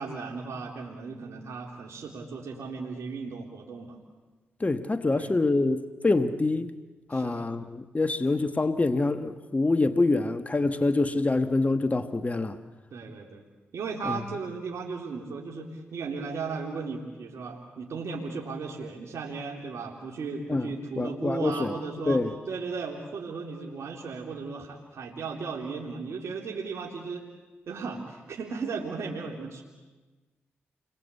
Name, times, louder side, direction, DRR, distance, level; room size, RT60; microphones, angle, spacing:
voice 1, 0.0-4.0 5.1-5.4 7.1-7.5 12.9-13.4 13.7-27.2 27.7-29.6, right 4 dB, 75° right, 3.5 m, -36 dB
voice 2, 4.6-6.7 7.1-12.6 14.1-14.2 20.5-20.7 21.0-21.7 22.1-22.3, left 2 dB, 30° left, 1.5 m, -25 dB
29.0 x 22.5 x 8.4 m
supercardioid pair, 45°, 5 cm